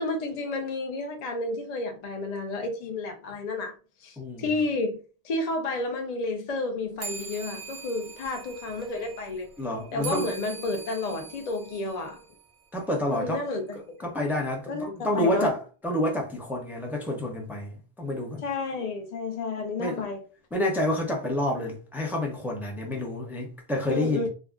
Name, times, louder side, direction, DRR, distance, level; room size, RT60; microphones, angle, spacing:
voice 1, 0.0-3.7 4.0-5.0 5.2-9.5 9.9-12.2 13.1-13.8 14.7-15.5 18.4-20.2 23.9-24.3, left 3 dB, 55° left, 0.5 m, -31 dB
sound 1, 7.0-12.8, right 6 dB, 60° right, 0.6 m, -42 dB
voice 2, 9.6-10.4 12.7-13.4 14.0-18.4 19.8-20.0 20.5-24.3, left 1 dB, 5° right, 0.4 m, -29 dB
2.4 x 2.0 x 3.5 m
omnidirectional pair, 1.1 m